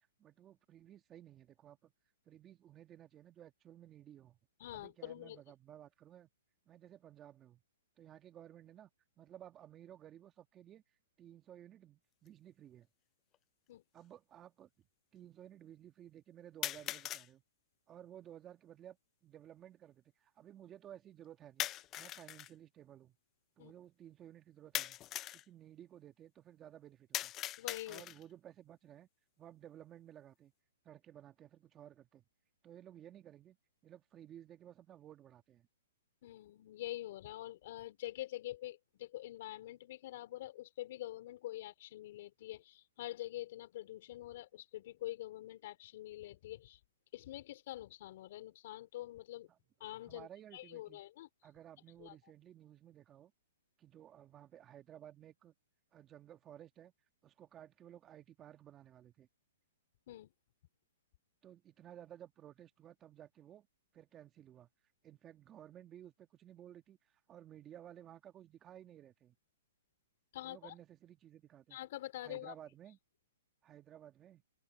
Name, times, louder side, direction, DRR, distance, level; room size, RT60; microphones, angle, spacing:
voice 1, 0.2-1.9 2.3-4.4 4.7-6.3 6.7-7.6 8.0-8.9 9.2-10.8 11.2-12.9 13.9-14.9 15.1-17.4 17.9-21.7 22.0-23.2 23.6-25.0 25.3-27.3 27.9-29.1 29.4-30.5 30.8-32.3 32.6-33.6 33.8-35.7 49.5-49.6 50.1-51.0 51.4-53.3 53.8-55.5 55.9-56.9 57.2-59.3 61.4-63.7 63.9-64.7 65.0-69.4 70.4-71.8 72.2-73.0 73.6-74.4, right 11 dB, 20° right, 1.8 m, -56 dB
voice 2, 4.6-5.4 13.7-13.8 23.6-23.7 27.6-28.0 36.2-46.8 47.1-49.5 49.8-51.3 52.0-52.2 60.1-60.3 70.3-70.7 71.7-72.5, left 15 dB, 50° left, 3.4 m, -46 dB
sound 1, 12.3-12.4 13.3-13.4 16.6-17.3 21.6-22.5 24.7-25.4 27.1-28.3, left 14 dB, 25° left, 0.4 m, -40 dB
hypercardioid pair, 145°, 0 cm